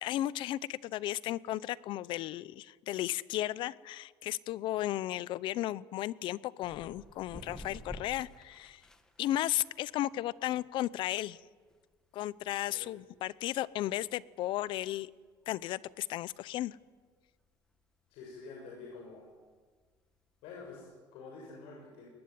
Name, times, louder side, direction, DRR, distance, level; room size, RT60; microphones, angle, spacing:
voice 1, 0.0-8.8 9.2-11.4 12.1-15.1 15.5-16.8, left 14 dB, 60° left, 20 dB, 0.7 m, -34 dB
sound 1, 6.6-21.0, left 1 dB, 5° left, 1.7 m, -55 dB
voice 2, 18.1-19.3 20.4-22.1, left 4 dB, 85° left, -2 dB, 6.8 m, -48 dB
22.0 x 20.0 x 9.6 m, 1.5 s
cardioid pair, 160°, 9 cm